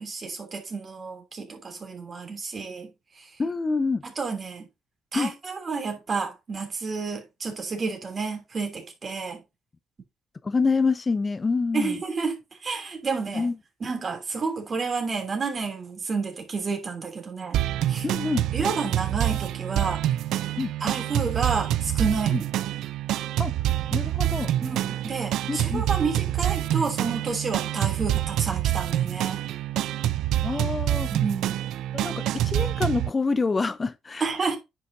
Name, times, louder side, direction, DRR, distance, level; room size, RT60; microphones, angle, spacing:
voice 1, 0.0-2.9 3.2-3.3 4.0-4.7 5.1-9.4 11.7-13.5 13.8-17.6 17.9-18.1 18.5-20.0 20.8-22.5 24.6-29.5 31.1-31.6 34.2-34.6, right 4 dB, 40° right, 3.0 m, -30 dB
voice 2, 3.4-4.0 5.1-5.3 10.4-11.9 13.3-13.5 18.0-18.4 20.6-20.7 22.3-22.4 23.4-23.5 23.9-24.5 25.5-25.8 30.4-31.1 31.9-34.2, left 4 dB, 30° left, 0.6 m, -26 dB
sound 1, 17.5-33.1, right 13 dB, 75° right, 0.4 m, -26 dB
10.0 x 5.5 x 2.7 m
supercardioid pair, 65°, 0 cm